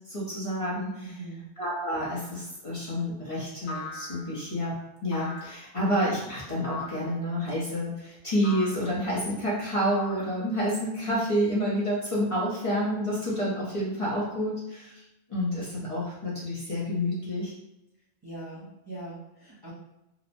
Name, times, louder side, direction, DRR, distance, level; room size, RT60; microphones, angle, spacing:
voice 1, 0.1-1.1 1.6-15.0 15.3-17.5, equal, 35° left, -8 dB, 0.7 m, -29 dB
voice 2, 1.0-1.4 18.2-19.7, right 2 dB, 30° right, -9 dB, 0.6 m, -41 dB
sound 1, 2.0-2.4 3.7-4.5 5.1-5.7 6.6-7.2 8.4-8.9 9.9-10.7, left 3 dB, 80° left, 0.9 m, -41 dB
2.9 x 2.0 x 2.5 m, 0.91 s
omnidirectional pair, 1.1 m